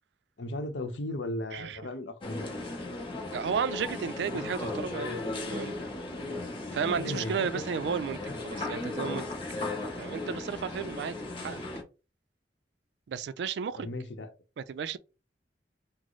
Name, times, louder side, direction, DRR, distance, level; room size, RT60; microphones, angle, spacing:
voice 1, 0.4-2.8 6.9-7.7 8.1-8.3 13.8-14.3, left 1 dB, 90° left, 0.7 m, -36 dB
sound 1, 2.2-11.8, left 2 dB, 30° left, 0.8 m, -36 dB
voice 2, 3.3-5.2 5.5-5.8 6.7-8.2 8.4-9.3 10.0-11.6 13.1-13.9 14.6-15.0, right 6 dB, 65° right, 0.3 m, -33 dB
3.0 x 2.0 x 3.9 m
head